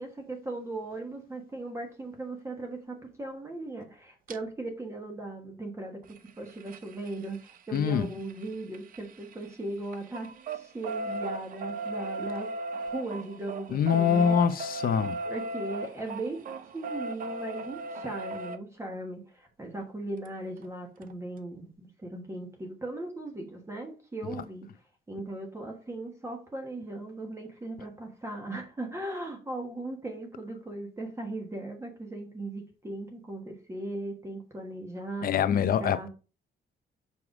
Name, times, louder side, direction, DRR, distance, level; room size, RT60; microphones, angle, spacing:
voice 1, 0.0-6.0 6.4-12.5 12.8-14.3 15.2-24.7 25.1-35.3 35.7-36.1, right 2 dB, 15° right, 1.3 m, -38 dB
sound 1, 4.3-4.4 6.0-9.5 9.8-18.6 20.2-20.3 20.6-20.7 21.0-21.1, right 2 dB, 50° right, 0.6 m, -37 dB
voice 2, 7.7-8.1 13.7-15.2 35.2-36.1, left 7 dB, 55° left, 0.6 m, -24 dB
5.6 x 4.8 x 4.9 m
cardioid pair, 160°, 18 cm